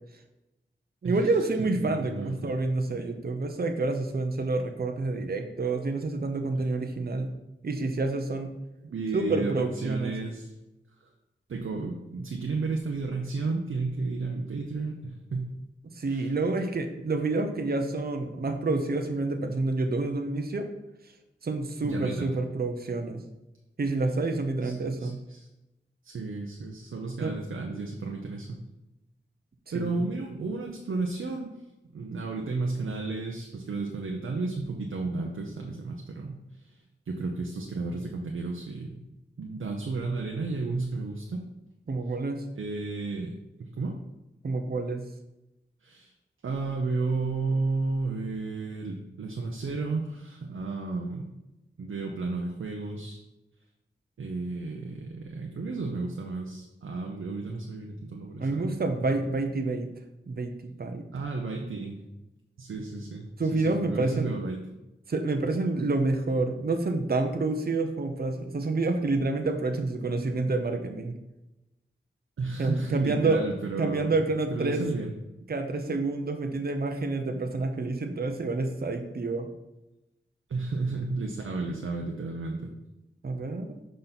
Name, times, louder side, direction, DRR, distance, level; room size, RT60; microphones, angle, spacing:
voice 1, 1.0-7.3 7.6-8.5 9.1-10.1 15.9-20.7 21.4-23.2 23.8-25.2 27.2-27.3 29.7-30.1 41.9-42.4 44.4-45.0 58.4-59.9 60.3-61.1 63.4-64.3 65.1-71.2 72.6-73.4 73.8-74.9 75.5-79.5 83.2-83.8, right 3 dB, 50° right, 5 dB, 0.7 m, -28 dB
voice 2, 1.6-2.5 8.8-10.5 11.0-11.1 11.5-15.5 16.0-16.3 21.8-22.3 24.6-25.5 26.0-28.6 29.7-31.5 31.9-36.4 36.6-39.0 39.4-41.4 42.6-44.0 45.8-46.1 46.4-51.3 51.8-53.2 54.2-59.1 61.1-62.0 62.6-64.6 72.4-74.1 74.5-75.1 80.5-82.7, right 3 dB, 90° right, 1 dB, 0.7 m, -33 dB
5.8 x 5.2 x 4.0 m, 0.98 s
wide cardioid pair, 60°, 20 cm